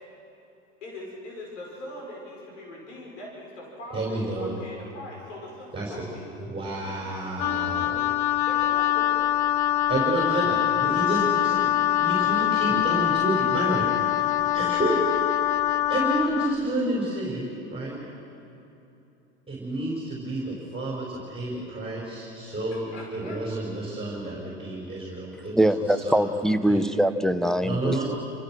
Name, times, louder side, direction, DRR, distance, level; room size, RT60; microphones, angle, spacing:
voice 1, 0.8-7.1 8.5-9.3 13.1-13.3 15.6-15.8 22.4-23.4, left 1 dB, 90° left, -2 dB, 5.8 m, -42 dB
voice 2, 3.9-4.5 5.7-5.9 6.4-8.1 9.9-11.7 12.0-15.4 15.9-18.0 19.5-26.3 26.7-26.9 27.6-28.1, right 2 dB, 15° right, -3 dB, 5.3 m, -30 dB
Wind instrument woodwind instrument, 7.4-16.6, left 12 dB, 55° left, 0.8 m, -24 dB
voice 3, 25.6-28.0, right 1 dB, ahead, 7 dB, 0.8 m, -23 dB
28.5 x 16.0 x 6.3 m, 2.9 s
hypercardioid pair, 100°, 36 cm